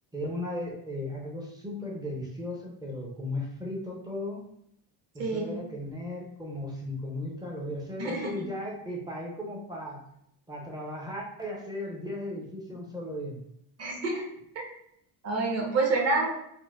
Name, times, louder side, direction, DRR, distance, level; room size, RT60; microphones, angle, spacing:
voice 1, 0.1-4.4 5.1-10.0 10.5-13.4, left 1 dB, 10° right, -2 dB, 0.6 m, -36 dB
voice 2, 8.0-8.4 13.8-14.3 15.2-16.3, right 3 dB, 35° right, -1 dB, 0.9 m, -27 dB
4.2 x 2.1 x 2.3 m, 0.72 s
cardioid pair, 125°, 42 cm